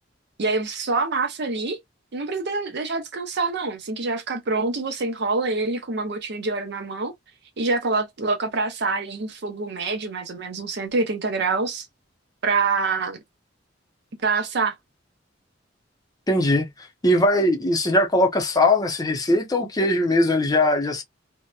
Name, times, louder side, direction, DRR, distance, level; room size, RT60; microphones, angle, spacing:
voice 1, 0.4-1.8 2.1-7.1 7.6-11.9 12.4-13.2 14.2-14.7, right 3 dB, 60° right, 0.6 m, -26 dB
voice 2, 16.3-16.7 17.0-21.0, left 1 dB, 20° left, 0.6 m, -20 dB
2.7 x 2.1 x 2.2 m
head